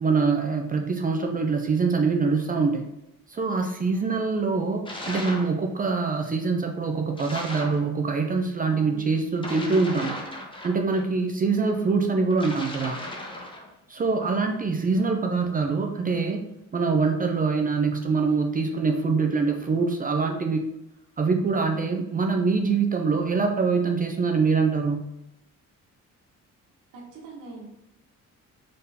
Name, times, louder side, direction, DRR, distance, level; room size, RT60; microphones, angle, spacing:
voice 1, 0.0-2.9 3.3-10.2 10.6-13.0 13.9-16.4 16.7-20.6 21.2-25.1, right 4 dB, 25° right, 3 dB, 0.4 m, -24 dB
sound 1, 4.8-5.5 7.2-7.8 9.3-11.0 12.3-13.7, left 1 dB, 15° left, 0.8 m, -36 dB
voice 2, 8.6-9.0 14.2-14.7 26.9-27.7, right 3 dB, 70° right, -2 dB, 1.3 m, -42 dB
3.8 x 3.6 x 2.7 m, 0.86 s
cardioid pair, 105°, 32 cm